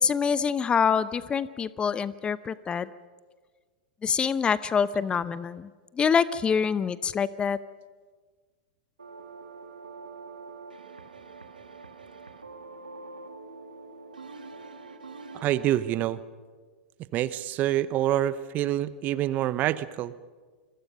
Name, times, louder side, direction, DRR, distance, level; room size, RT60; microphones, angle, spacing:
voice 1, 0.0-2.9 4.0-5.7 5.9-7.6, left 6 dB, 20° left, 17 dB, 0.8 m, -25 dB
sound 1, 9.0-15.8, right 4 dB, 85° right, 2.2 m, -45 dB
voice 2, 15.3-16.2 17.1-20.1, right 13 dB, 40° right, 16 dB, 0.9 m, -26 dB
27.5 x 22.5 x 5.5 m, 1.5 s
figure-of-eight pair, 95°, 5 cm